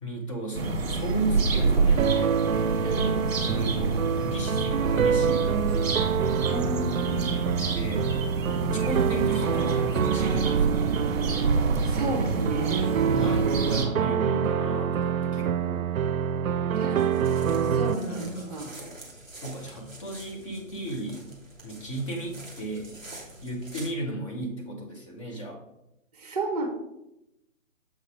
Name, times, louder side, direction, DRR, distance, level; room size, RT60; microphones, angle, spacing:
voice 1, 0.0-2.3 3.4-5.9 7.7-8.1 8.6-10.9 13.1-15.9 18.1-21.2 21.6-23.0 23.4-25.6, right 1 dB, 25° left, -1 dB, 1.0 m, -35 dB
sound 1, 0.5-13.9, right 3 dB, 45° right, 1.5 m, -28 dB
sound 2, 2.0-17.9, right 7 dB, 80° right, 0.5 m, -26 dB
voice 2, 2.8-3.6 6.5-7.3 11.9-12.9 16.7-17.4 17.6-18.7 26.1-26.7, right 2 dB, 30° right, 3 dB, 1.0 m, -33 dB
sound 3, 16.9-23.9, right 2 dB, ahead, 0.6 m, -46 dB
7.0 x 4.1 x 4.8 m, 0.87 s
figure-of-eight pair, 145°, 41 cm